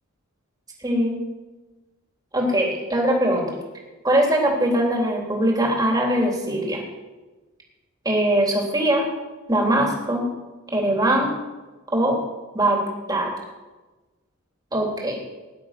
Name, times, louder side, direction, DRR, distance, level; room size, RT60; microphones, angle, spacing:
voice 1, 0.8-1.2 2.3-3.5 4.0-6.8 8.0-9.0 9.5-10.3 10.7-11.4 11.9-12.2 12.5-12.8 13.1-13.3 14.7-15.2, right 1 dB, 20° right, -1 dB, 3.3 m, -21 dB
18.0 x 11.0 x 5.9 m, 1.2 s
head